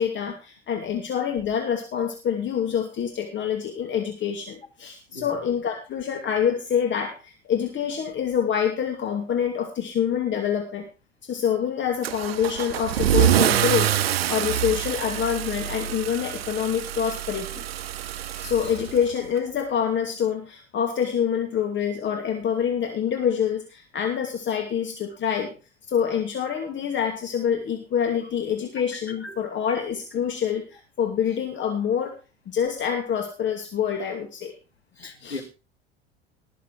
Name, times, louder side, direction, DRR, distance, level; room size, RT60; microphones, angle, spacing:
voice 1, 0.0-10.9 11.2-17.6 18.4-25.5 25.9-32.2 32.5-34.5 35.2-35.4, left 8 dB, 35° left, 4 dB, 2.6 m, -26 dB
Car / Engine starting / Accelerating revving vroom, 12.0-19.4, right 11 dB, 75° right, 0.8 m, -26 dB
voice 2, 18.3-18.7 28.9-29.4 35.0-35.4, left 2 dB, 90° left, 6 dB, 2.2 m, -39 dB
20.0 x 7.2 x 5.1 m, 0.31 s
figure-of-eight pair, 70°, 31 cm